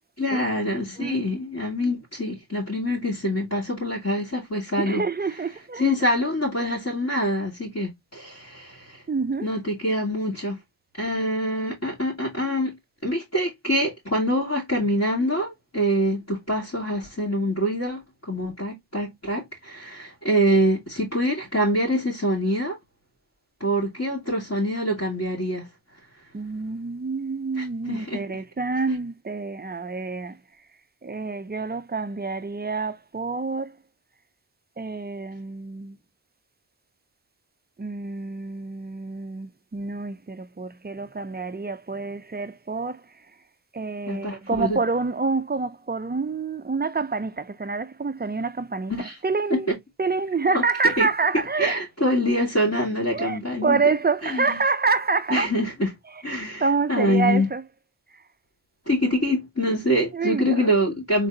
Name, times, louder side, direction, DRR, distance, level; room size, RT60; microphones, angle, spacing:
voice 1, 0.2-5.0 5.8-9.0 9.4-10.6 11.0-12.8 13.0-22.8 23.6-25.7 27.6-28.2 44.1-44.8 48.9-49.1 49.7-49.8 50.5-50.6 51.0-51.1 51.6-53.8 54.2-54.6 55.3-55.9 56.2-56.6 56.9-57.5 58.9-61.3, equal, 40° left, 2.4 m, -25 dB
voice 2, 4.8-5.9 9.1-9.5 26.3-30.4 31.0-33.8 34.8-36.0 37.8-43.0 43.7-49.7 50.0-51.8 53.1-55.5 56.6-57.6 58.1-58.2 60.1-60.7, right 4 dB, 25° right, 0.5 m, -27 dB
3.9 x 3.7 x 2.7 m
wide cardioid pair, 75°, 41 cm